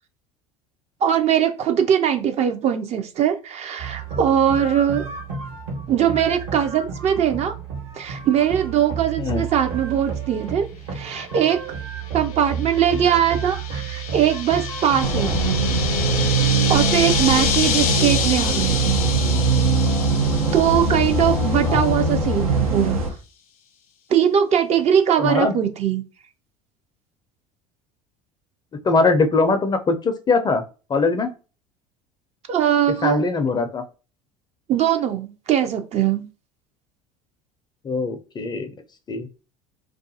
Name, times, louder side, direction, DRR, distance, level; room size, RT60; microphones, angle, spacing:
voice 1, 1.0-5.1 5.9-7.5 7.9-10.6 10.9-11.6 12.1-15.7 16.7-19.0 20.5-23.0 24.1-26.0 32.5-33.2 34.7-36.2, right 9 dB, 40° right, 0.4 m, -21 dB
sound 1, 3.8-15.6, right 6 dB, 70° right, 1.2 m, -32 dB
sound 2, 12.1-21.9, left 7 dB, 75° left, 0.5 m, -28 dB
sound 3, 15.0-23.1, right 3 dB, 85° right, 0.6 m, -21 dB
voice 2, 25.2-25.6 28.8-30.6 30.9-31.3 33.0-33.8 37.8-38.7 39.1-39.3, left 3 dB, 25° left, 0.4 m, -21 dB
2.3 x 2.3 x 2.6 m
hypercardioid pair, 70°, 18 cm